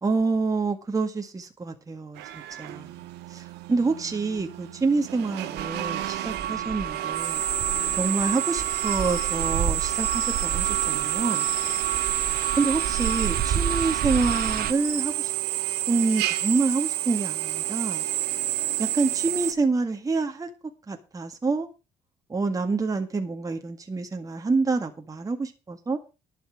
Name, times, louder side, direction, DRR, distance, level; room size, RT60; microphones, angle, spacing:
voice 1, 0.0-7.4 8.0-11.5 12.6-15.3 15.9-18.1 18.8-20.5 20.9-21.7 22.3-26.0, right 3 dB, 20° right, 1.8 m, -27 dB
Drill, 2.2-19.5, right 13 dB, 85° right, 1.4 m, -30 dB
sound 1, 5.6-14.7, right 9 dB, 65° right, 1.3 m, -29 dB
sound 2, 8.5-15.0, left 8 dB, 85° left, 2.7 m, -45 dB
11.5 x 5.7 x 8.4 m
cardioid pair, 110°, 17 cm